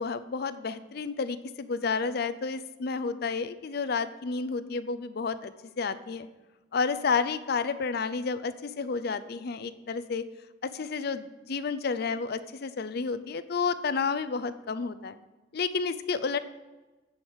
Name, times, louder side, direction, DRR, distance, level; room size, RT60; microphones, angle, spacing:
voice 1, 0.0-6.3 6.7-10.2 10.6-15.2 15.5-16.4, left 5 dB, 55° left, 13 dB, 0.5 m, -31 dB
9.6 x 4.8 x 7.2 m, 1.1 s
head